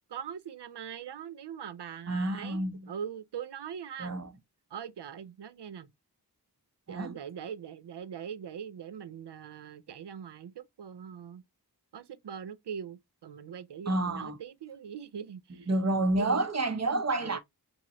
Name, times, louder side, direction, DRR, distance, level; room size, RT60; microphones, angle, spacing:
voice 1, 0.1-4.1 4.7-5.9 6.9-11.4 11.9-15.7 16.2-16.4 17.2-17.4, right 8 dB, 75° right, 0.5 m, -42 dB
voice 2, 2.1-2.9 4.0-4.3 6.9-7.2 13.9-14.4 15.7-17.4, right 2 dB, 40° right, 0.8 m, -29 dB
3.6 x 2.8 x 2.9 m
wide cardioid pair, 50°, 41 cm